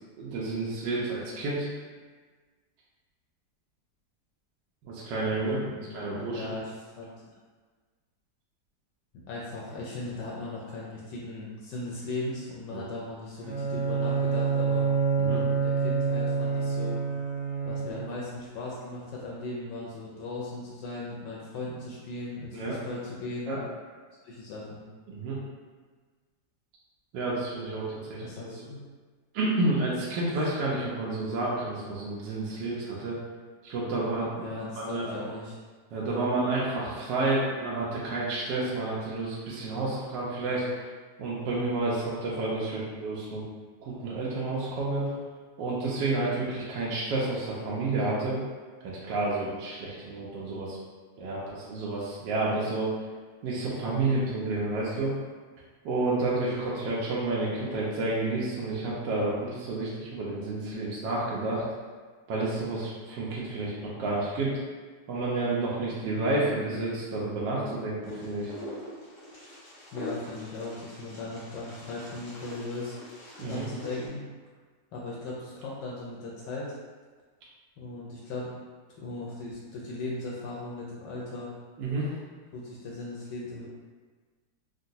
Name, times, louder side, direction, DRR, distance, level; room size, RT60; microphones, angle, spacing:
voice 1, 0.2-1.7 4.8-5.6 5.9-6.4 12.7-12.8 15.2-15.4 22.5-22.8 23.5-23.6 25.1-25.4 27.1-28.2 29.3-33.2 33.6-35.1 35.9-40.8 41.2-43.4 43.8-45.1 45.6-48.4 48.8-50.8 51.2-52.9 53.4-55.1 55.8-61.6 62.3-64.6 65.1-68.5 73.4-73.7 81.8-82.1, right 2 dB, 75° right, -6 dB, 1.2 m, -30 dB
voice 2, 5.3-7.1 9.3-14.9 15.5-17.0 17.6-23.5 24.2-24.8 28.2-28.8 34.4-35.6 69.9-72.9 73.4-74.2 74.9-76.7 77.8-78.5 79.0-81.5 82.5-83.7, left 2 dB, 75° left, -4 dB, 1.1 m, -38 dB
Bowed string instrument, 13.4-18.2, right 5 dB, 55° right, 1.1 m, -27 dB
Wind, 68.0-74.1, left 1 dB, 55° left, 0.9 m, -44 dB
3.8 x 2.2 x 2.6 m, 1.5 s
omnidirectional pair, 2.0 m